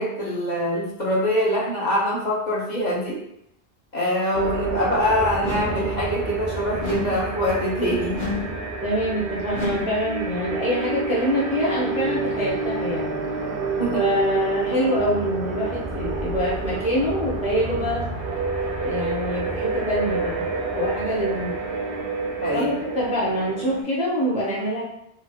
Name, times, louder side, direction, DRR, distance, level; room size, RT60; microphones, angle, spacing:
voice 1, 0.0-3.2 3.9-8.2 13.8-14.1 22.4-22.8, equal, 45° left, -6 dB, 0.9 m, -24 dB
sound 1, 4.3-23.8, right 3 dB, 65° right, 0.7 m, -28 dB
sound 2, 5.4-5.9 6.8-7.3 8.1-8.6 9.5-10.0, left 4 dB, 85° left, 1.0 m, -30 dB
voice 2, 8.8-13.1 13.9-18.1 18.8-20.5 20.7-21.5 22.5-24.8, equal, 10° right, -6 dB, 0.5 m, -25 dB
2.9 x 2.4 x 2.8 m, 0.75 s
omnidirectional pair, 1.1 m